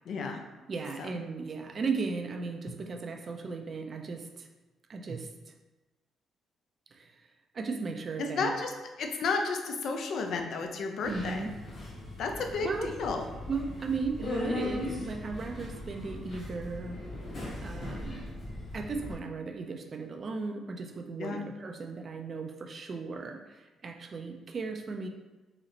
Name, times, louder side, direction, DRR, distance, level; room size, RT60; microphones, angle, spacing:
voice 1, 0.1-0.4 1.0-1.2 8.2-8.7 9.0-11.5 12.2-13.2 21.2-21.4, left 4 dB, 70° left, 4 dB, 0.4 m, -32 dB
voice 2, 0.7-4.5 4.9-5.5 6.9-7.3 7.5-8.5 11.1-11.5 12.6-12.9 13.5-17.0 17.6-18.3 18.7-25.1, right 4 dB, 45° right, 4 dB, 0.3 m, -36 dB
Subway metro underground, 11.0-19.1, left 2 dB, 50° left, 1.1 m, -39 dB
3.9 x 2.1 x 2.8 m, 1.1 s
cardioid pair, 90°, 0 cm